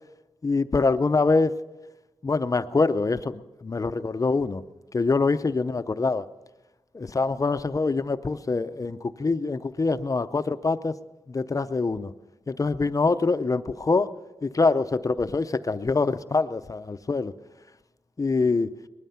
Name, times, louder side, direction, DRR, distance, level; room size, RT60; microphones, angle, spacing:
voice 1, 0.4-1.5 2.2-4.6 4.9-6.2 6.9-11.0 11.3-12.1 12.5-14.1 14.4-17.3 18.2-18.7, left 3 dB, 35° left, 11 dB, 0.5 m, -24 dB
20.0 x 13.0 x 5.7 m, 1.1 s
wide cardioid pair, 110°, 10 cm